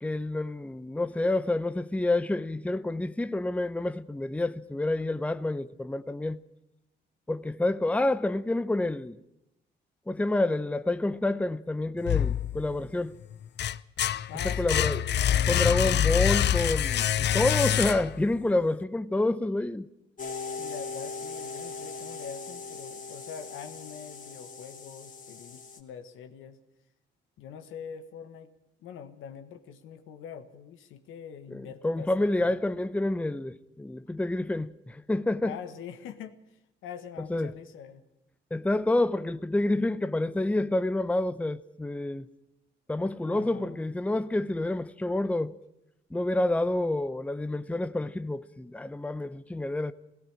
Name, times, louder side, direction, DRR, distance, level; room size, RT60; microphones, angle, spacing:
voice 1, 0.0-6.4 7.3-9.2 10.1-13.1 14.4-15.0 15.5-19.9 31.5-35.6 37.3-37.5 38.5-42.3 42.9-45.5 46.1-49.9, left 2 dB, 5° left, 0.7 m, -28 dB
sound 1, 12.0-12.9 13.3-18.3, left 10 dB, 60° left, 0.7 m, -26 dB
voice 2, 14.3-15.1 20.6-26.6 27.4-28.5 28.8-32.6 35.4-38.0 43.2-43.8, left 7 dB, 85° left, 1.6 m, -44 dB
sound 2, 20.2-25.8, left 4 dB, 40° left, 2.8 m, -39 dB
17.5 x 17.5 x 8.8 m
cardioid pair, 90°, 20 cm